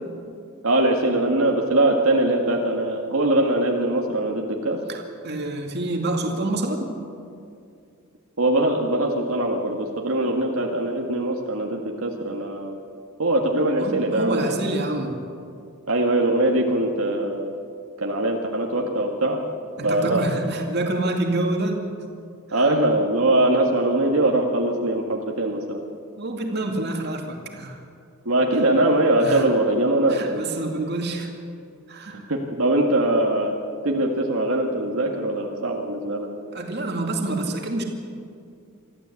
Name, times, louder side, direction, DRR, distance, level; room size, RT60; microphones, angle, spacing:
voice 1, 0.6-4.8 8.4-12.7 13.2-14.6 15.9-17.5 18.0-19.4 19.8-20.6 22.5-25.8 28.3-30.2 32.3-33.6 33.8-36.3, right 1 dB, 80° right, 0 dB, 1.9 m, -22 dB
voice 2, 4.9-6.9 13.8-15.2 19.8-21.8 22.5-22.6 26.2-27.8 29.2-29.5 30.1-31.3 31.9-32.3 36.5-37.8, right 2 dB, 50° right, 2 dB, 2.5 m, -27 dB
24.0 x 14.0 x 8.4 m, 2.4 s
head